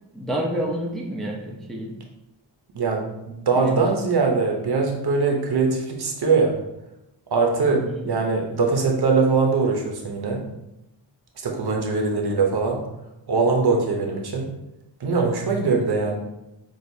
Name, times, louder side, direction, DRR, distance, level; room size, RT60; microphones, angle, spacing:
voice 1, 0.1-1.9 3.6-3.8 7.7-8.1, equal, ahead, -1 dB, 0.5 m, -29 dB
voice 2, 2.7-6.5 7.3-10.4 11.4-12.8 13.3-14.5 15.0-16.2, right 4 dB, 60° right, 1 dB, 0.8 m, -22 dB
6.2 x 2.4 x 2.7 m, 0.90 s
wide cardioid pair, 130°, 44 cm